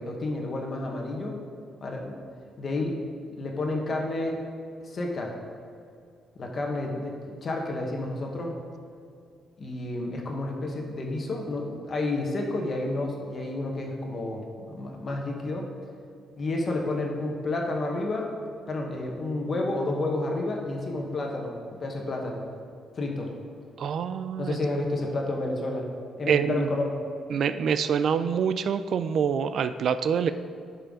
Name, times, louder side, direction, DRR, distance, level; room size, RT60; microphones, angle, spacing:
voice 1, 0.0-1.4 1.8-2.2 2.6-4.4 4.8-5.3 6.3-8.6 9.6-15.7 16.4-18.4 18.7-22.4 22.9-23.3 24.4-25.9 26.2-27.0, left 2 dB, 40° left, 1 dB, 1.3 m, -30 dB
voice 2, 23.8-24.6 26.3-26.7 27.3-30.3, right 7 dB, 60° right, 11 dB, 0.3 m, -26 dB
11.0 x 5.7 x 3.8 m, 2.4 s
cardioid pair, 130°, 0 cm